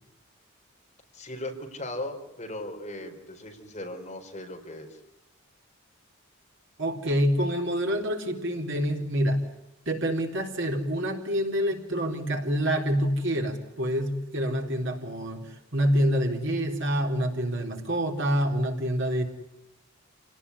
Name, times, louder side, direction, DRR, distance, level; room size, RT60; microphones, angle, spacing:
voice 1, 1.1-5.0, left 1 dB, 30° left, 2 dB, 4.4 m, -38 dB
voice 2, 6.8-9.4 9.9-19.2, equal, 55° right, 2 dB, 3.8 m, -27 dB
28.5 x 18.5 x 9.9 m, 0.91 s
head